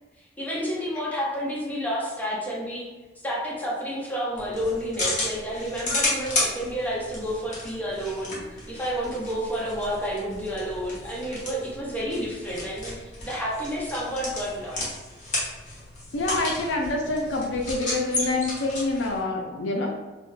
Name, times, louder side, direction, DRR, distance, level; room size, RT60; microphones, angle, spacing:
voice 1, 0.4-2.9 3.2-15.0, equal, 10° left, -6 dB, 0.7 m, -30 dB
sound 1, 4.3-19.2, left 2 dB, 40° left, 0.9 m, -33 dB
voice 2, 16.1-19.9, left 2 dB, 70° left, 0 dB, 0.4 m, -26 dB
2.3 x 2.1 x 3.9 m, 1.2 s
head